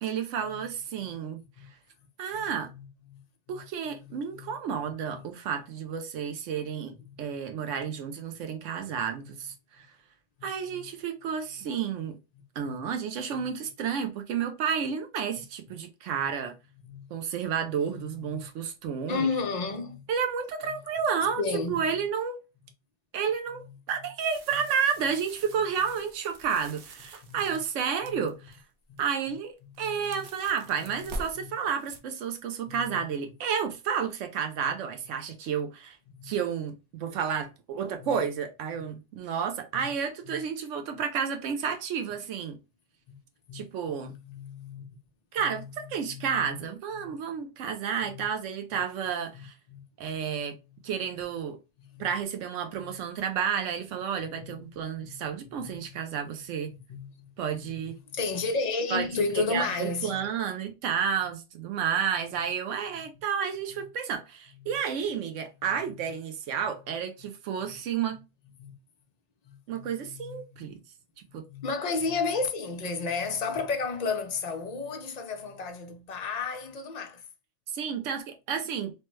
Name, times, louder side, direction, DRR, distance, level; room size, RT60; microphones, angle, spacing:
voice 1, 0.0-1.4 2.2-2.7 3.5-6.9 7.2-9.9 10.4-12.2 12.6-16.5 17.1-19.3 20.1-21.4 21.7-22.4 23.1-28.6 29.0-36.0 36.2-42.6 43.5-44.1 45.3-49.5 50.0-50.6 50.8-51.6 52.0-56.7 57.4-57.9 58.9-59.1 59.4-68.2 69.7-70.8 71.3-71.4 77.7-78.9, right 7 dB, 90° right, 1.0 m, -31 dB
voice 2, 2.3-3.2 3.5-4.6 5.1-5.2 7.0-7.2 10.4-10.9 12.6-12.8 13.3-13.5 16.2-16.3 16.8-17.1 17.9-18.5 19.1-20.0 20.6-20.8 21.4-21.9 23.5-23.7 27.3-27.6 28.0-28.3 29.8-30.2 30.8-31.1 31.4-31.5 32.7-33.0 34.6-34.7 36.2-36.3 38.0-38.2 38.7-38.9 39.7-39.9 40.3-40.4 43.1-43.2 43.5-43.6 43.9-44.9 45.4-46.6 46.9-47.1 48.0-48.2 49.3-49.8 50.7-50.8 51.8-52.1 52.8-52.9 54.3-55.2 55.6-56.0 56.4-60.3 62.9-63.0 63.7-63.9 64.6-64.8 65.8-66.0 67.6-67.8 68.6-68.7 69.4-70.7 71.3-77.3, left 4 dB, 50° left, 0.5 m, -34 dB
sound 1, 24.2-28.5 29.0-29.3 29.6-32.0, right 1 dB, 60° right, 0.7 m, -45 dB
3.2 x 2.1 x 3.0 m
omnidirectional pair, 1.2 m